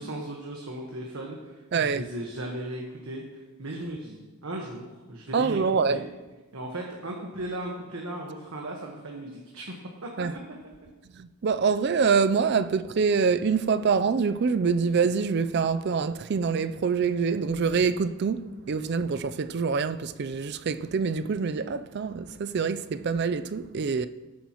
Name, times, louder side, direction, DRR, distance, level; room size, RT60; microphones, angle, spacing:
voice 1, 0.0-5.6 5.9-6.0 6.5-10.1, right 1 dB, 75° right, 1.3 m, -37 dB
voice 2, 1.7-2.1 3.8-3.9 5.3-6.0 10.2-10.3 11.1-24.1, right 5 dB, 50° right, 0.4 m, -25 dB
18.5 x 8.6 x 3.0 m
head